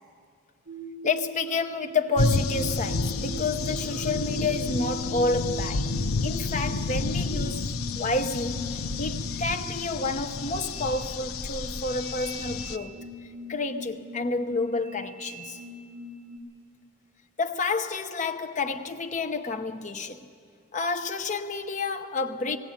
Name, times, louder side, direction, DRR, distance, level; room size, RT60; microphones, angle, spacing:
sound 1, 0.7-16.4, right 2 dB, 75° right, 4.0 m, -41 dB
voice 1, 1.0-13.0 13.5-15.6 17.4-20.3 20.7-22.6, left 3 dB, 35° left, 0.7 m, -30 dB
sound 2, 2.2-12.8, left 4 dB, 80° left, 0.6 m, -30 dB
19.5 x 17.0 x 8.8 m
head